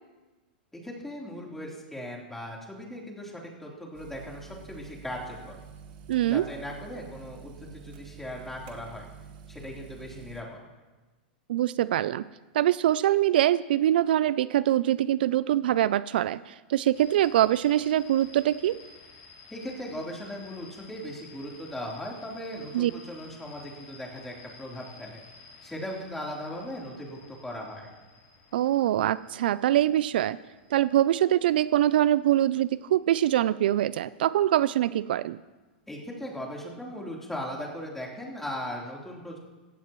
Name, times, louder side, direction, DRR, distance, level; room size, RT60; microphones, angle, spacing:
voice 1, 0.7-5.6 6.3-9.1 9.5-10.6 19.5-25.2 25.6-27.9 35.9-39.4, equal, 5° left, -3 dB, 3.6 m, -38 dB
sound 1, 3.9-10.4, right 6 dB, 55° right, 1.7 m, -47 dB
voice 2, 6.1-6.4 11.5-12.2 12.5-18.8 22.7-22.9 28.5-30.4 30.7-35.4, right 12 dB, 75° right, 17 dB, 0.4 m, -24 dB
sound 2, 16.9-33.6, left 4 dB, 55° left, 4.1 m, -53 dB
16.0 x 15.0 x 3.1 m, 1.2 s
hypercardioid pair, 120°, 5 cm